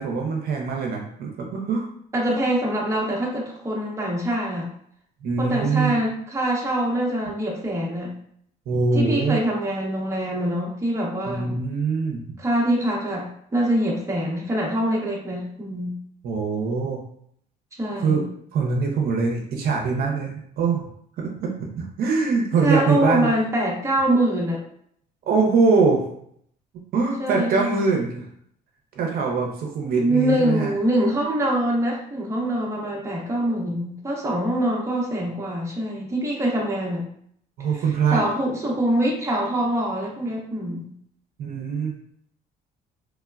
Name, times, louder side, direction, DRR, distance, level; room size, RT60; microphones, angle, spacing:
voice 1, 0.0-1.9 5.2-6.0 8.7-9.4 11.3-12.4 16.2-17.0 18.0-18.2 18.5-20.9 21.2-21.5 21.8-23.3 25.3-26.0 26.9-28.3 29.0-30.7 37.6-38.2 41.4-41.9, right 4 dB, 65° right, 0 dB, 0.6 m, -23 dB
voice 2, 2.1-4.7 5.4-8.1 8.9-11.5 12.4-16.0 17.8-18.3 22.6-24.6 27.2-27.8 29.9-37.0 37.7-37.8 38.1-40.9, right 1 dB, 15° right, -3 dB, 0.7 m, -24 dB
3.1 x 2.0 x 2.3 m, 0.67 s
cardioid pair, 110°, 17 cm